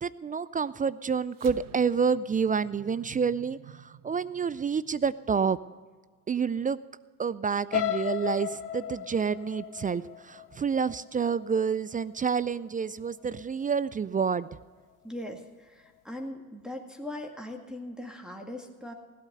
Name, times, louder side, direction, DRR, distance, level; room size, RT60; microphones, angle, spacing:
voice 1, 0.0-5.6 6.3-6.8 7.2-14.5, right 6 dB, 20° right, 18 dB, 0.3 m, -28 dB
sound 1, 1.3-6.0, right 10 dB, 50° right, 0.8 m, -51 dB
sound 2, 7.7-11.7 12.2-12.5 12.8-12.9, left 12 dB, 85° left, 0.6 m, -34 dB
voice 2, 15.0-18.9, left 1 dB, ahead, 1 dB, 1.9 m, -40 dB
16.5 x 8.6 x 6.7 m, 1.5 s
hypercardioid pair, 50°, 44 cm